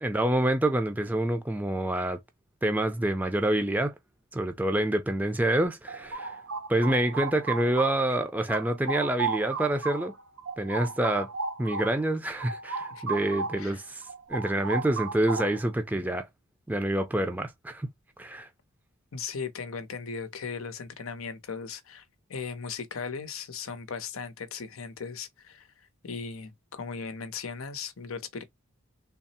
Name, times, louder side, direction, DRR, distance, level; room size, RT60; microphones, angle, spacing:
voice 1, 0.0-2.2 2.6-3.9 4.3-6.3 6.7-10.1 10.6-11.3 11.6-14.0 14.3-16.3 16.7-17.9 18.2-18.5, right 1 dB, 10° right, 0.4 m, -27 dB
sound 1, 5.6-8.2 8.5-13.7 14.0-15.7, right 5 dB, 80° right, 0.7 m, -35 dB
voice 2, 19.1-22.0 22.3-28.4, left 5 dB, 85° left, 0.7 m, -37 dB
3.5 x 2.0 x 4.1 m
head